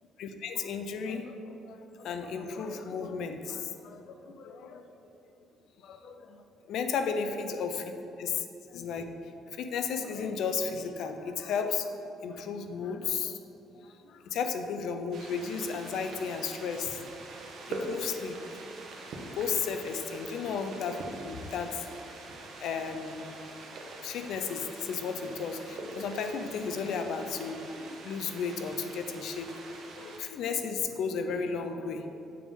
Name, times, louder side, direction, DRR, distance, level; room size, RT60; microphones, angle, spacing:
voice 1, 0.2-5.1 5.8-7.8 8.2-13.4 13.8-17.0 17.7-18.4 19.3-21.9 22.6-23.4 24.0-29.5 30.0-32.2, left 5 dB, 70° left, 7 dB, 0.5 m, -34 dB
sound 1, 15.1-30.2, right 2 dB, 60° right, 0.9 m, -43 dB
7.5 x 3.6 x 5.4 m, 2.8 s
cardioid pair, 120°, 0 cm